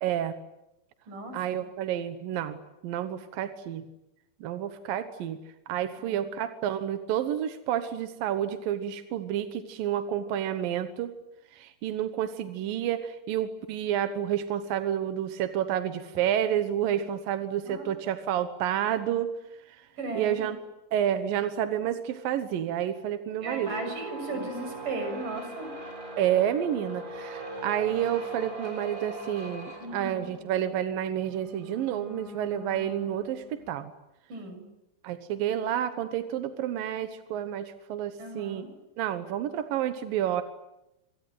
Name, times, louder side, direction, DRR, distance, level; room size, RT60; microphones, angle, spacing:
voice 1, 0.0-0.3 1.3-3.8 4.4-5.4 5.7-11.1 11.5-19.3 19.7-19.9 20.1-20.6 20.9-23.7 24.3-24.5 26.2-33.9 35.0-38.7 39.0-40.4, right 10 dB, 65° right, 9 dB, 2.4 m, -30 dB
voice 2, 20.0-20.4 23.4-25.7 29.8-30.3 34.3-34.6 38.2-38.7, right 2 dB, 45° right, 6 dB, 8.3 m, -36 dB
sound 1, 23.4-33.7, right 1 dB, 20° right, 6.9 m, -41 dB
27.0 x 23.5 x 9.1 m, 0.90 s
omnidirectional pair, 5.3 m